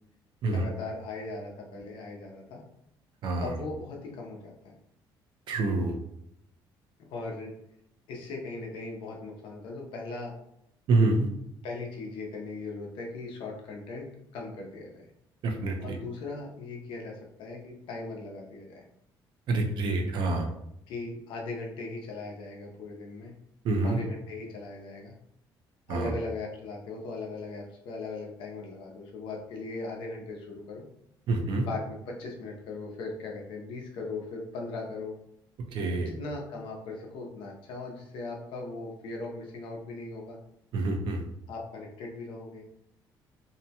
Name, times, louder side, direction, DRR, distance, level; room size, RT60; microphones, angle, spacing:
voice 1, 0.4-2.6 3.4-4.7 7.0-7.5 8.1-10.3 11.6-15.1 15.8-18.8 20.9-23.3 23.8-25.1 25.9-30.8 31.6-35.1 36.0-40.4 41.5-42.7, left 3 dB, 80° left, 0 dB, 0.7 m, -39 dB
voice 2, 3.2-3.5 5.5-5.9 10.9-11.3 15.4-16.0 19.5-20.5 23.6-24.0 25.9-26.1 31.3-31.7 35.7-36.1 40.7-41.2, right 2 dB, 65° right, 3 dB, 0.6 m, -27 dB
2.7 x 2.2 x 2.7 m, 0.76 s
cardioid pair, 120°, 9 cm